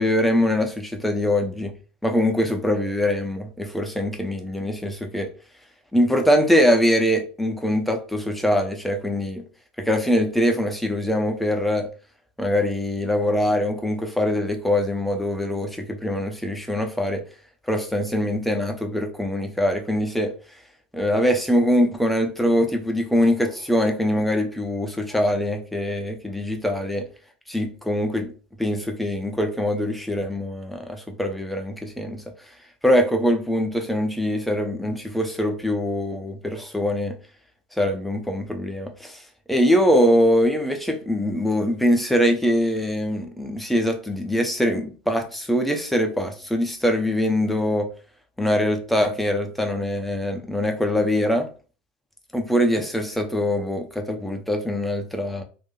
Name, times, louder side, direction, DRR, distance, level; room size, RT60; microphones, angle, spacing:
voice 1, 0.0-1.7 2.0-5.3 5.9-9.4 9.8-11.9 12.4-17.2 17.7-20.3 20.9-27.1 27.5-28.3 28.6-32.2 32.8-37.2 37.8-39.2 39.5-47.9 48.4-51.5 52.3-55.4, equal, ahead, 0.8 m, -23 dB
2.8 x 2.6 x 3.8 m
figure-of-eight pair, 80°, 6 cm